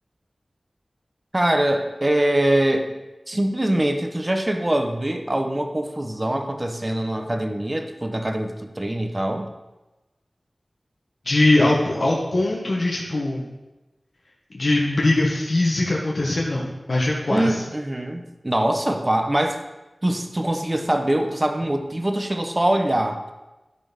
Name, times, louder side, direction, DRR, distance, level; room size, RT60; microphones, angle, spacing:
voice 1, 1.3-2.9 3.3-9.5 17.3-19.6 20.0-23.4, right 1 dB, 30° right, 5 dB, 1.1 m, -23 dB
voice 2, 11.2-13.5 14.5-17.6, left 2 dB, 70° left, -4 dB, 1.6 m, -21 dB
12.0 x 4.4 x 5.4 m, 1.1 s
wide cardioid pair, 45°, 0 cm